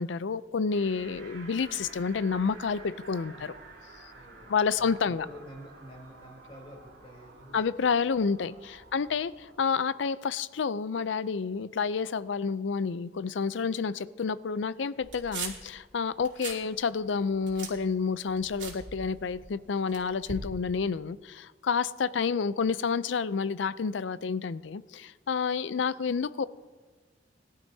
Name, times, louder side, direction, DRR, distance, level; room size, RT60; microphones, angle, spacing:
voice 1, 0.0-3.5 4.5-5.3 7.5-26.5, left 5 dB, 75° left, 16 dB, 0.5 m, -29 dB
sound 1, 0.7-9.6, right 3 dB, 70° right, 4.0 m, -51 dB
voice 2, 4.1-7.7 8.8-9.1 22.6-22.7, equal, 30° left, -2 dB, 3.4 m, -49 dB
sound 2, 15.0-15.7 16.1-16.6 17.0-19.5 19.9-20.5, right 5 dB, 90° right, 2.7 m, -40 dB
21.0 x 12.0 x 2.8 m, 1.4 s
head